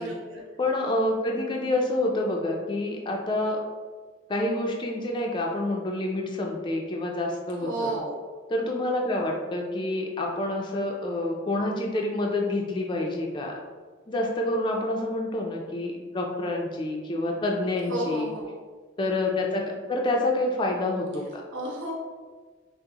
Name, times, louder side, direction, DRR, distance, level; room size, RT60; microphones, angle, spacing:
voice 1, 0.0-0.4 7.6-8.2 17.9-18.5 21.5-21.9, right 1 dB, 70° right, -4 dB, 0.8 m, -32 dB
voice 2, 0.6-3.6 4.3-8.0 8.5-13.5 14.1-18.3 19.0-21.4, left 1 dB, 25° left, 0 dB, 0.4 m, -28 dB
5.7 x 2.0 x 2.9 m, 1.4 s
head